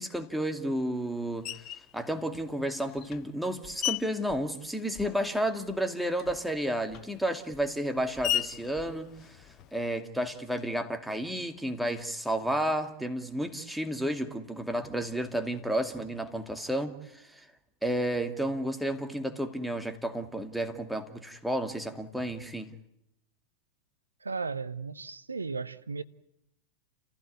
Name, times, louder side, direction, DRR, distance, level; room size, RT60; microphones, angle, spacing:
voice 1, 0.0-1.6 1.9-9.4 9.7-17.5 17.8-22.7, right 1 dB, ahead, 2.3 m, -32 dB
Screech, 1.4-1.9 2.7-5.4 5.7-10.0, left 12 dB, 40° left, 0.9 m, -37 dB
voice 2, 24.2-26.0, right 4 dB, 80° right, 1.0 m, -35 dB
30.0 x 15.5 x 9.5 m
figure-of-eight pair, 90°, 0 cm